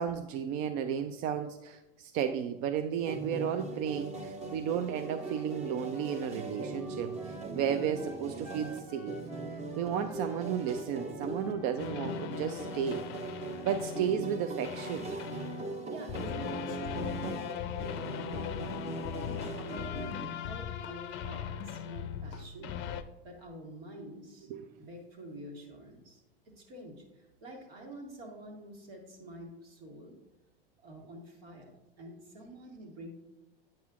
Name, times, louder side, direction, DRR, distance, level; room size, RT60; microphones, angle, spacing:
voice 1, 0.0-9.2 9.8-13.1 13.6-15.1 24.5-24.7, right 8 dB, 50° right, 8 dB, 0.5 m, -33 dB
sound 1, 3.0-20.5, right 3 dB, 20° right, 0.9 m, -40 dB
Wind instrument woodwind instrument, 5.1-11.9, equal, 5° right, 1.3 m, -52 dB
sound 2, 11.8-14.3 14.6-23.0, left 9 dB, 40° left, 0.5 m, -39 dB
voice 2, 15.9-17.5 18.2-18.9 19.2-22.8 23.2-24.5 24.8-30.2 30.8-33.1, right 1 dB, 75° right, 0 dB, 1.9 m, -48 dB
8.7 x 5.6 x 2.5 m, 1.0 s
hypercardioid pair, 95°, 29 cm